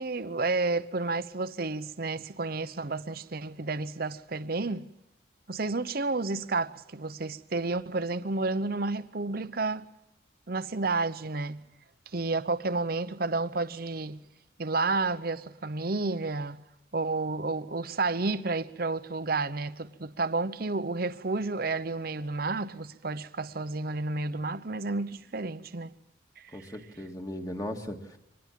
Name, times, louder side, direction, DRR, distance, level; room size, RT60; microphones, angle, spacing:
voice 1, 0.0-4.9 5.5-9.8 10.5-11.6 12.1-14.2 14.6-16.6 16.9-25.9 26.4-26.7, right 3 dB, 50° right, 0.8 m, -31 dB
voice 2, 26.5-28.2, left 1 dB, 20° left, 2.0 m, -37 dB
25.0 x 20.0 x 7.5 m
head